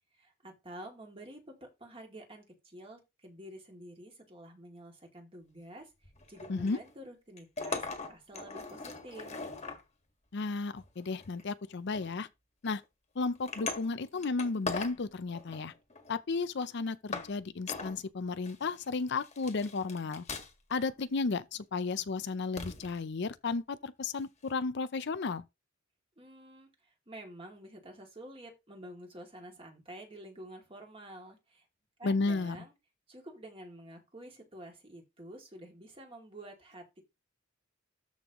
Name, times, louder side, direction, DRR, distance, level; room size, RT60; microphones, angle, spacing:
voice 1, 0.1-9.5 26.2-31.7 32.0-32.7 33.1-37.0, right 1 dB, 25° right, 2.6 m, -49 dB
sound 1, 6.0-6.9 7.4-9.8 10.8-11.4 11.9-12.2 12.6-12.8 13.4-15.0 15.3-16.1 16.6-16.7 17.1-17.3 17.7-18.0 18.4-18.9 19.2-20.7 21.0-21.2 22.6-23.0 24.5-24.6, left 3 dB, 35° left, 1.7 m, -40 dB
voice 2, 10.3-12.3 12.6-12.8 13.2-15.7 16.1-20.2 20.7-25.4 32.0-32.6, left 4 dB, 55° left, 0.5 m, -33 dB
13.0 x 5.5 x 3.0 m
head